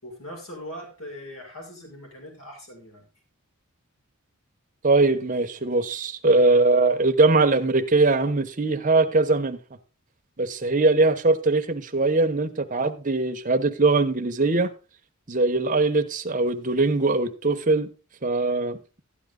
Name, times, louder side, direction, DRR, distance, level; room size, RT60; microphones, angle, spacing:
voice 1, 0.0-3.1, equal, 70° left, 5.9 m, -40 dB
voice 2, 4.8-9.6 10.4-14.7 15.3-17.9 18.2-18.8, right 3 dB, 35° right, 1.0 m, -21 dB
13.0 x 9.4 x 3.8 m
head